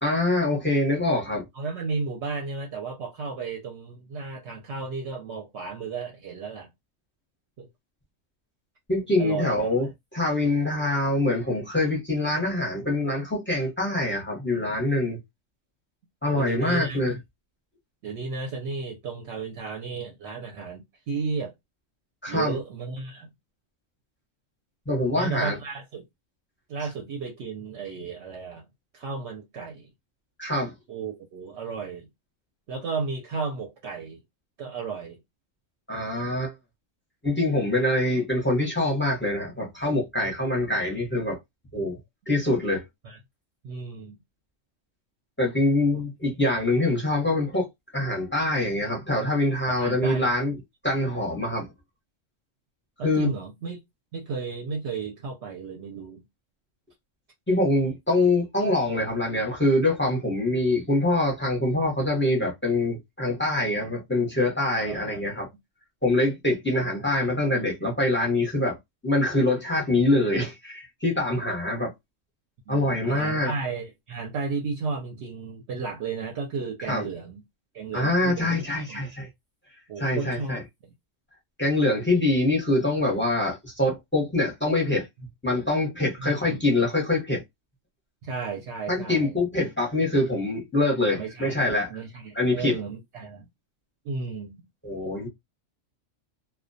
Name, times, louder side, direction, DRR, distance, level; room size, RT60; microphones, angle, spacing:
voice 1, 0.0-1.4 8.9-15.2 16.2-17.1 22.2-22.5 24.9-25.6 30.4-30.7 35.9-36.5 37.2-41.4 41.7-42.0 42.3-42.8 45.4-47.7 47.9-50.6 50.8-51.7 53.0-53.3 57.5-65.5 66.0-68.8 69.0-71.9 72.7-73.5 76.9-77.1 77.9-79.3 80.0-80.6 81.6-85.1 85.4-87.4 88.9-91.9 92.3-92.8 94.8-95.3, left 2 dB, 10° left, 0.6 m, -24 dB
voice 2, 1.5-6.7 7.6-7.7 9.2-9.7 16.3-17.2 18.0-21.5 22.3-23.3 25.1-26.1 26.7-28.6 28.9-29.9 30.9-32.1 32.7-34.2 34.6-35.2 43.0-43.2 43.6-44.2 45.9-46.0 49.8-50.3 53.0-53.8 54.1-56.2 64.8-65.2 72.7-77.4 77.7-78.6 78.9-79.0 79.9-80.9 86.2-86.6 88.2-89.3 91.1-93.5 94.0-94.7, right 4 dB, 65° right, 0.8 m, -34 dB
2.2 x 2.2 x 2.5 m
omnidirectional pair, 1.3 m